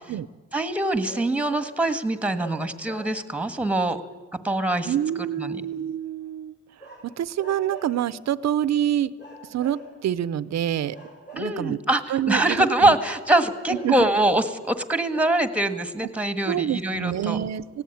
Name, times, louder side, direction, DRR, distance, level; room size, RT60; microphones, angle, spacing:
voice 1, 0.5-4.0 4.4-4.9 5.4-5.6 11.4-17.4, right 1 dB, 5° right, 11 dB, 1.5 m, -23 dB
sound 1, 1.0-1.8 2.4-3.5 6.8-8.1 9.2-10.3 10.9-11.9 13.4-14.4 14.8-14.9 15.1-15.4, right 2 dB, 35° left, 6.0 m, -43 dB
voice 2, 4.8-6.5 7.0-9.1 9.4-11.0 11.3-11.8 12.1-12.9 13.8-14.1 16.0-16.1 16.5-17.8, right 10 dB, 65° right, 17 dB, 0.7 m, -26 dB
19.0 x 16.5 x 9.3 m, 1.3 s
cardioid pair, 105°, 29 cm